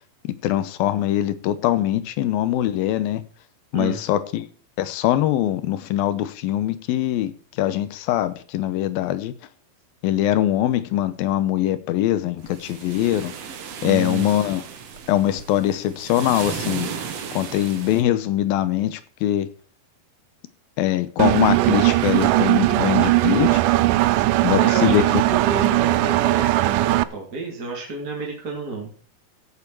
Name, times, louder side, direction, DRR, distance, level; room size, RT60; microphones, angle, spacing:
voice 1, 0.2-3.2 3.7-4.5 4.8-7.3 7.6-9.3 10.0-13.3 13.8-14.6 15.1-16.9 17.3-19.5 20.8-23.6 24.4-25.0, left 13 dB, 75° left, 2.5 m, -22 dB
sound 1, 12.4-18.0, right 7 dB, 55° right, 2.0 m, -35 dB
voice 2, 13.8-14.3 24.3-28.9, right 4 dB, 25° right, 3.0 m, -30 dB
Engine, 21.2-27.0, right 17 dB, 90° right, 1.8 m, -19 dB
17.0 x 7.4 x 4.7 m
omnidirectional pair, 4.5 m